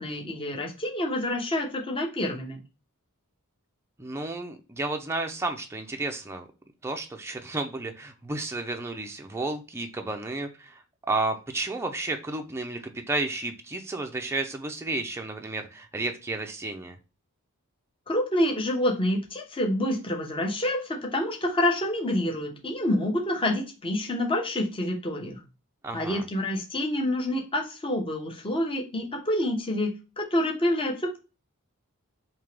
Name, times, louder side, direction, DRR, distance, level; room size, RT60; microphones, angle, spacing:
voice 1, 0.0-2.6 18.1-25.4 25.9-31.2, left 1 dB, 25° left, 1 dB, 0.9 m, -27 dB
voice 2, 4.0-6.5 6.8-10.8 11.1-17.0 25.8-26.2, right 2 dB, 10° right, 4 dB, 0.4 m, -32 dB
3.5 x 2.9 x 3.2 m, 0.31 s
head